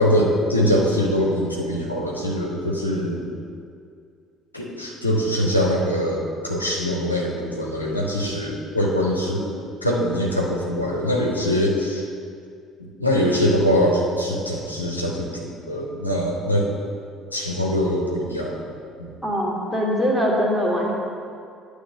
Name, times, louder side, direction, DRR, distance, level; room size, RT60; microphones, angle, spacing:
voice 1, 0.0-3.2 4.5-9.5 9.8-12.1 13.0-16.7 17.3-18.7 19.0-19.1, equal, 90° left, -3 dB, 0.8 m, -23 dB
voice 2, 19.2-20.9, equal, ahead, -4 dB, 1.9 m, -22 dB
9.6 x 3.3 x 6.5 m, 2.3 s
figure-of-eight pair, 55°, 0 cm